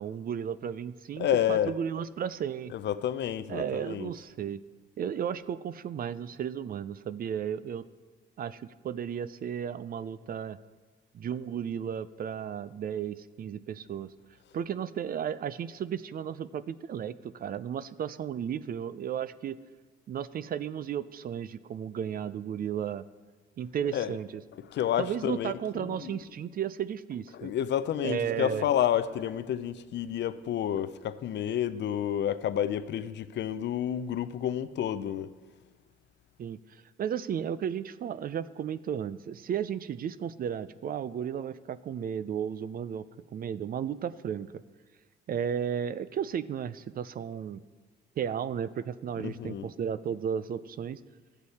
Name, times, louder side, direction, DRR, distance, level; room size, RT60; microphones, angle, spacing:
voice 1, 0.0-2.7 3.5-4.6 5.0-7.8 8.4-10.6 11.1-14.1 14.5-19.6 20.1-23.0 23.6-24.4 25.0-27.5 28.0-28.7 36.4-44.6 45.3-47.6 48.2-51.0, right 8 dB, 50° right, 0.4 m, -34 dB
voice 2, 1.2-1.7 2.7-4.1 23.9-24.1 24.6-26.2 27.3-35.3 49.2-49.7, left 10 dB, 65° left, 0.5 m, -30 dB
13.5 x 8.1 x 4.2 m
cardioid pair, 90°, 20 cm